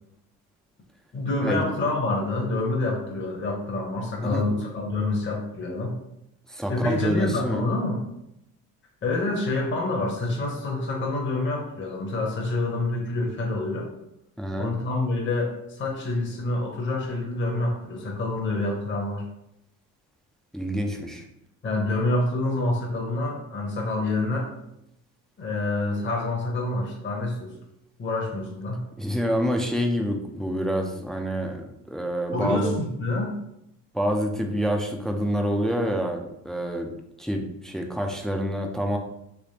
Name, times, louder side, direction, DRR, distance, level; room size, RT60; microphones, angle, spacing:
voice 1, 1.1-5.9 6.7-8.0 9.0-13.9 14.5-19.2 21.6-24.5 25.4-27.6 28.0-28.8 32.3-33.3, left 2 dB, 35° left, -1 dB, 0.9 m, -27 dB
voice 2, 4.2-4.6 6.5-7.7 14.4-14.8 20.5-21.2 29.0-32.7 33.9-36.9 37.2-39.0, equal, ahead, 3 dB, 0.4 m, -27 dB
3.4 x 2.9 x 2.8 m, 0.81 s
cardioid pair, 90°, 34 cm